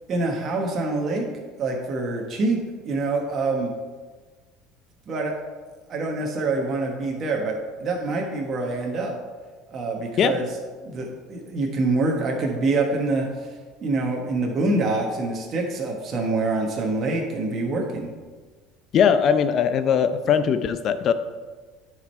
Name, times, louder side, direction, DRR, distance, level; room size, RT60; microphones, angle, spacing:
voice 1, 0.1-1.3 1.6-2.6 2.8-3.7 5.1-5.3 5.9-9.1 9.7-10.5 10.8-13.5 13.8-18.1, right 3 dB, 40° right, 0 dB, 1.3 m, -25 dB
voice 2, 18.9-21.1, left 7 dB, 45° left, 11 dB, 0.6 m, -20 dB
9.6 x 5.0 x 4.4 m, 1.4 s
supercardioid pair, 110°, 0 cm